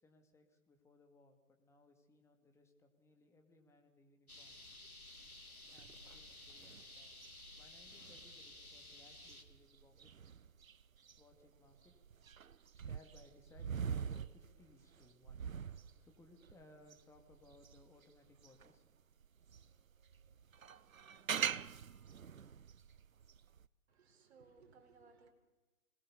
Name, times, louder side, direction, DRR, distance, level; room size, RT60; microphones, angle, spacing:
voice 1, 0.0-4.6 5.7-7.1 7.6-10.1 11.2-12.0 12.7-15.4 16.0-18.9, left 2 dB, 5° left, 3 dB, 2.4 m, -65 dB
sound 1, 4.3-9.4, left 2 dB, 85° left, 3.1 m, -55 dB
sound 2, 5.1-18.8 19.2-23.7, right 7 dB, 70° right, 0.9 m, -45 dB
voice 2, 23.9-25.3, right 4 dB, 45° right, 5 dB, 4.7 m, -63 dB
26.5 x 20.5 x 7.0 m, 1.2 s
figure-of-eight pair, 130°, 43 cm